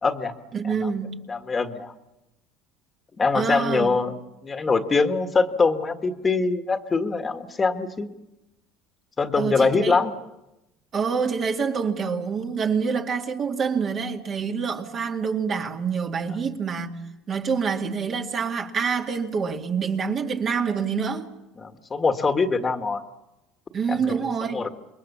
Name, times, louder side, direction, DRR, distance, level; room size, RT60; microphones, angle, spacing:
voice 1, 0.0-0.3 0.6-0.9 1.3-1.9 3.2-4.1 4.4-8.1 9.2-10.1 21.6-23.0 23.9-24.1 24.5-24.7, left 4 dB, 25° left, 1.8 m, -23 dB
voice 2, 0.5-1.2 3.3-4.0 9.4-10.0 10.9-17.0 17.3-21.3 23.7-24.7, right 6 dB, 40° right, 2.2 m, -26 dB
27.5 x 22.0 x 7.1 m
supercardioid pair, 115°, 0 cm